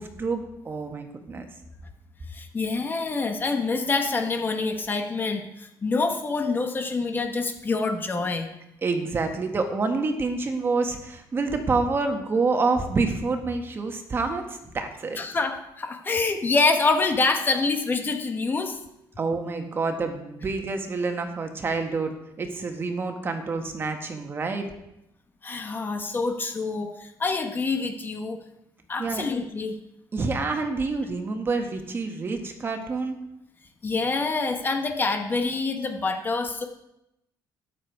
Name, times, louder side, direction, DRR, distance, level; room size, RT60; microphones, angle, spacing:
voice 1, 0.0-1.5 8.8-15.2 19.2-22.1 22.4-24.7 29.0-29.2 30.1-33.2, right 3 dB, 30° right, 5 dB, 1.5 m, -27 dB
voice 2, 2.3-8.5 15.2-18.8 25.4-28.4 28.9-29.7 33.8-36.6, left 3 dB, 25° left, 5 dB, 1.2 m, -26 dB
13.5 x 9.8 x 4.8 m, 0.85 s
cardioid pair, 140°, 8 cm